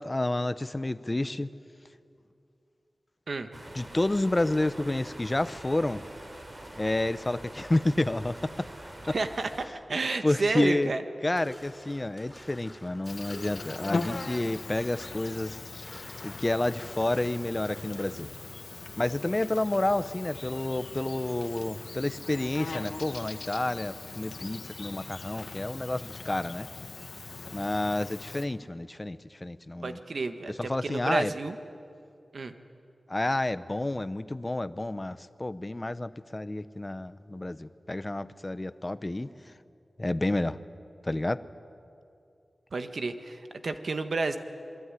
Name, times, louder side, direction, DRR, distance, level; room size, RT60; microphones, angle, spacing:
voice 1, 0.0-1.5 3.7-6.0 6.8-8.7 9.1-9.2 10.2-10.9 11.2-15.6 16.2-18.3 19.0-26.7 27.5-30.0 30.6-31.3 33.1-39.3 40.0-40.6 41.0-41.4, left 1 dB, 25° left, 14 dB, 0.8 m, -30 dB
sound 1, 3.5-9.7, right 1 dB, 35° right, 4.0 m, -45 dB
voice 2, 9.1-9.5 9.9-11.0 29.8-31.6 32.3-32.5 42.7-44.4, right 3 dB, 65° right, 8 dB, 1.5 m, -30 dB
sound 2, 11.4-18.3, equal, 10° left, 5.5 m, -49 dB
Insect, 13.1-28.5, left 3 dB, 65° left, 1.6 m, -40 dB
27.0 x 21.5 x 9.8 m, 2.5 s
wide cardioid pair, 100°, 0 cm